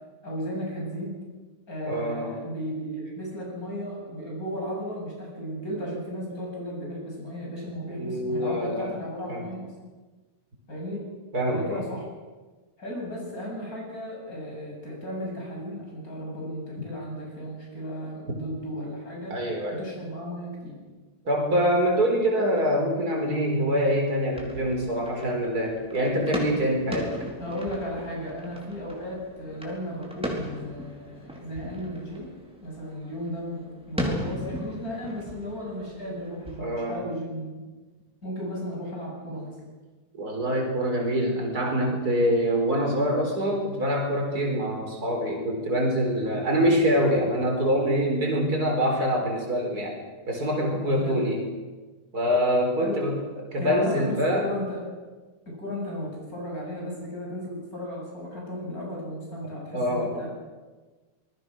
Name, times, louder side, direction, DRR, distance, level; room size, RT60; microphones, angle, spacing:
voice 1, 0.2-1.2 1.7-9.7 10.7-11.0 11.4-12.0 12.8-19.4 19.7-20.8 27.4-32.3 32.6-37.6 38.2-39.6 51.0-51.3 52.8-53.0 53.6-54.8 55.5-60.3, equal, 65° left, -2 dB, 8.0 m, -35 dB
voice 2, 1.9-2.3 8.0-8.9 9.3-9.5 11.3-11.8 19.3-19.9 21.2-27.1 36.6-37.0 40.2-49.9 50.3-51.5 52.1-53.2 53.5-54.5 59.7-60.3, equal, 70° right, 1 dB, 4.7 m, -25 dB
sound 1, 24.3-36.6, equal, 5° right, 4.3 m, -37 dB
26.5 x 20.5 x 6.3 m, 1.3 s
omnidirectional pair, 1.7 m